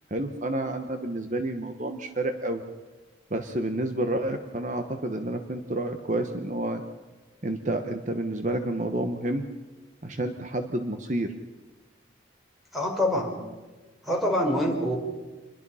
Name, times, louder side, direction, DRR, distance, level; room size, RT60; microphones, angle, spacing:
voice 1, 0.1-2.6 3.3-6.8 7.4-9.5 10.0-11.3, right 1 dB, 40° right, 7 dB, 1.1 m, -29 dB
voice 2, 12.7-13.3 14.0-15.0, left 1 dB, ahead, 0 dB, 4.5 m, -25 dB
27.0 x 22.0 x 5.7 m, 1.3 s
head